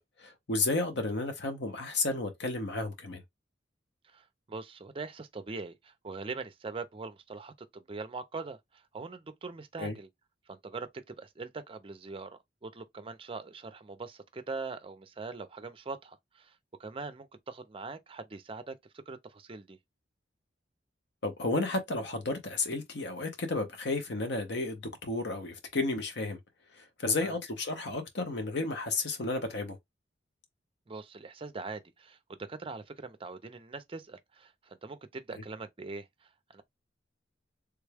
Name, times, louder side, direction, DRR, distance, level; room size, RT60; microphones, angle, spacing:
voice 1, 0.2-3.2 9.8-10.0 21.2-26.4 26.7-29.8, left 3 dB, 65° left, 0.8 m, -32 dB
voice 2, 4.0-10.1 10.5-18.8 19.1-19.8 27.2-27.4 30.9-36.6, right 3 dB, 30° right, 0.5 m, -42 dB
3.4 x 2.2 x 3.3 m
head